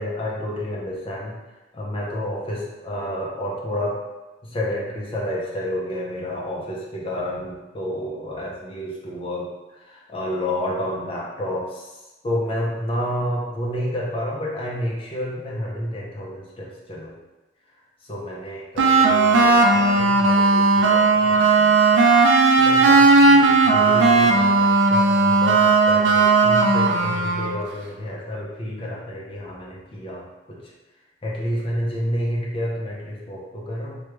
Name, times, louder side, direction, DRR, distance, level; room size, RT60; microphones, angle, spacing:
voice 1, 0.0-1.3 1.7-4.0 4.5-9.5 9.9-11.9 12.2-17.2 18.1-21.8 22.6-30.6 31.2-34.0, equal, 25° left, -4 dB, 0.5 m, -30 dB
sound 1, 18.8-27.6, right 3 dB, 75° right, 0.4 m, -16 dB
3.1 x 2.2 x 3.2 m, 1.1 s
head